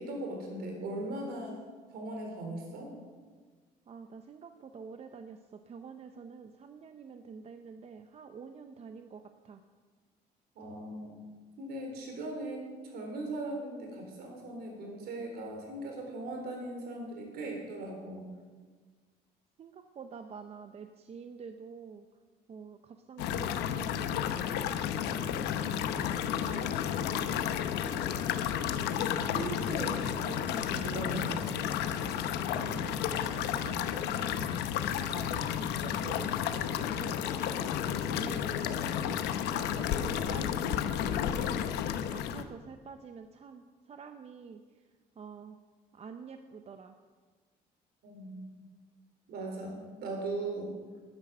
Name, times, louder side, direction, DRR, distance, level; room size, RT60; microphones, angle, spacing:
voice 1, 0.0-1.6 1.9-3.0 10.6-11.2 11.6-18.3 29.2-31.5 37.8-38.1 48.0-48.4 49.3-50.7, right 2 dB, 70° right, 2 dB, 3.9 m, -39 dB
voice 2, 3.9-9.6 19.6-22.0 22.5-26.1 26.5-28.0 32.5-34.7 35.0-39.2 39.5-44.9 45.2-45.6 45.9-47.0, right 6 dB, 40° right, 7 dB, 0.7 m, -48 dB
sound 1, 23.2-42.4, left 9 dB, 85° left, 0.8 m, -32 dB
12.0 x 9.8 x 6.2 m, 1.4 s
cardioid pair, 110°, 17 cm